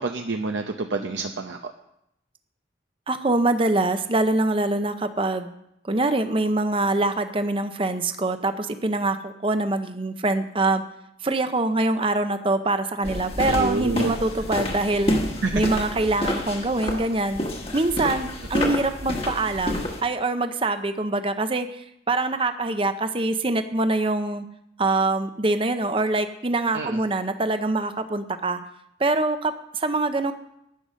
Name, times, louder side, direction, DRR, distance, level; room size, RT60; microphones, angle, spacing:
voice 1, 0.0-1.7 13.4-14.1 15.4-15.6 26.7-27.0, right 3 dB, 80° right, 4 dB, 0.8 m, -28 dB
voice 2, 3.1-5.5 5.9-10.8 11.2-15.1 15.5-17.4 17.7-24.4 24.8-28.6 29.0-30.3, right 2 dB, 30° right, 9 dB, 0.7 m, -24 dB
sound 1, 13.0-20.0, left 1 dB, 30° left, 1.4 m, -29 dB
10.5 x 9.6 x 6.3 m, 0.79 s
head